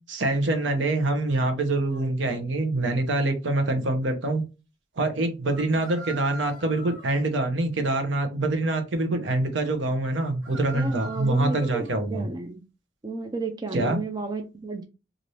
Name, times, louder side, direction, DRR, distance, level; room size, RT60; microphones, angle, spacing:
voice 1, 0.1-4.4 5.0-12.3 13.7-14.0, right 2 dB, 70° right, 7 dB, 0.7 m, -25 dB
sound 1, 1.9-2.1 5.5-7.2 10.1-12.0, right 2 dB, 90° right, 1.2 m, -43 dB
voice 2, 10.7-12.6 13.0-14.8, right 3 dB, 20° right, 5 dB, 0.4 m, -32 dB
2.7 x 2.5 x 3.1 m, 0.30 s
head